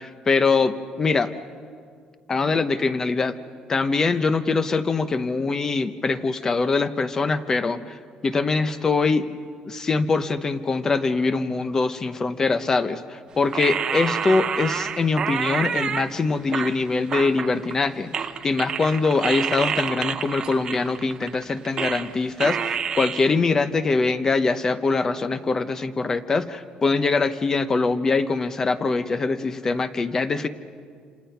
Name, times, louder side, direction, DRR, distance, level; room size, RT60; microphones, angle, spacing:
voice 1, 0.0-1.3 2.3-3.3 3.7-9.3 9.7-30.5, left 4 dB, 25° left, 12 dB, 0.9 m, -23 dB
sound 1, 13.5-16.1 16.5-17.9 18.1-22.1 22.4-23.2, right 7 dB, 35° right, 0.8 m, -28 dB
28.0 x 27.0 x 5.8 m, 2.1 s
cardioid pair, 150°, 2 cm